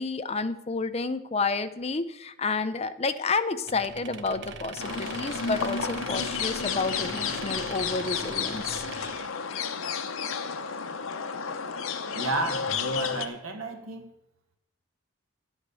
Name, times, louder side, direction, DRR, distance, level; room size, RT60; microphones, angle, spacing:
voice 1, 0.0-8.8, left 4 dB, 30° left, 11 dB, 0.6 m, -30 dB
sound 1, 3.7-9.0, equal, 50° left, 3.6 m, -48 dB
sound 2, 3.7-9.3, right 6 dB, 60° right, 0.8 m, -42 dB
sound 3, 4.8-13.3, left 6 dB, 75° left, 0.8 m, -32 dB
voice 2, 12.1-14.1, right 2 dB, 85° right, 5 dB, 1.9 m, -32 dB
11.0 x 8.1 x 6.8 m, 0.85 s
head